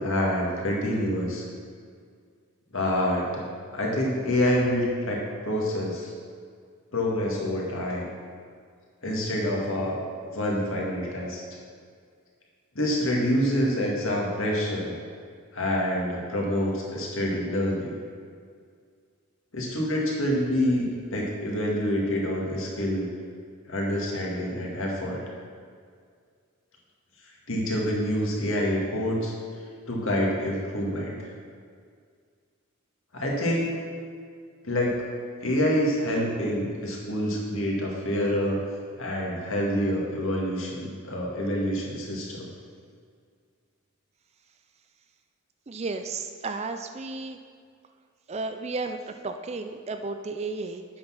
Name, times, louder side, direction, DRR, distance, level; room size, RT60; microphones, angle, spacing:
voice 1, 0.0-1.4 2.7-3.4 3.7-6.1 6.9-8.1 9.0-10.0 10.3-11.4 12.8-14.9 15.5-17.9 19.5-23.1 23.7-25.2 27.5-29.3 29.9-31.1 33.1-33.7 34.6-35.0 35.4-38.6 39.0-42.5, equal, 65° left, -2 dB, 2.0 m, -27 dB
voice 2, 45.7-47.4 48.3-50.9, right 3 dB, 30° right, 7 dB, 0.4 m, -33 dB
8.6 x 6.3 x 5.8 m, 2.1 s
head